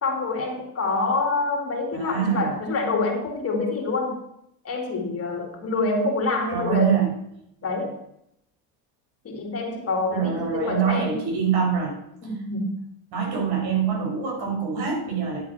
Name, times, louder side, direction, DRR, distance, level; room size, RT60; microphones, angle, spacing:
voice 1, 0.0-4.2 4.6-7.0 7.6-8.0 9.2-11.2 12.2-12.8, left 3 dB, 35° left, 2 dB, 3.5 m, -26 dB
voice 2, 1.9-2.5 6.5-7.1 10.1-12.0 13.1-15.4, right 7 dB, 65° right, 0 dB, 5.6 m, -24 dB
11.0 x 7.3 x 5.9 m, 0.75 s
supercardioid pair, 110°, 40 cm